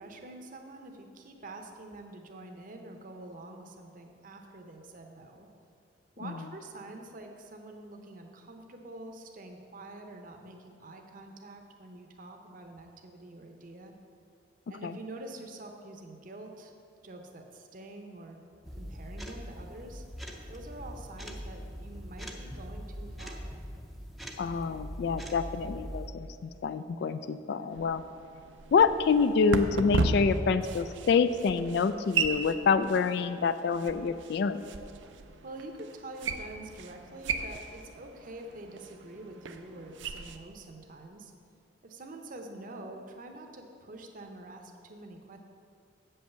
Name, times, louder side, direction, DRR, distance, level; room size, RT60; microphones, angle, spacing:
voice 1, 0.0-5.5 6.2-13.9 14.7-16.7 17.0-18.4 18.7-20.0 20.5-23.6 35.4-41.3 41.8-45.4, right 2 dB, 45° right, 4 dB, 0.7 m, -46 dB
sound 1, 18.6-26.1, equal, ahead, 0.6 m, -42 dB
voice 2, 24.4-28.0 28.7-34.7, left 5 dB, 60° left, 12 dB, 0.3 m, -27 dB
sound 2, 27.7-40.4, right 4 dB, 80° right, 0.5 m, -36 dB
7.7 x 5.5 x 6.7 m, 2.5 s
head